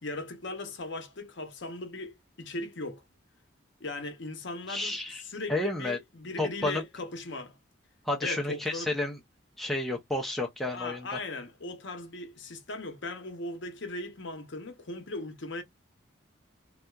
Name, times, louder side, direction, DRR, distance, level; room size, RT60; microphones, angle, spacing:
voice 1, 0.0-3.0 3.8-7.6 8.2-8.9 10.7-15.6, left 2 dB, 65° left, 0.8 m, -38 dB
voice 2, 4.7-5.2 5.5-6.0 6.4-6.8 8.1-9.2 9.6-11.1, left 2 dB, ahead, 0.4 m, -31 dB
2.8 x 2.3 x 2.2 m
head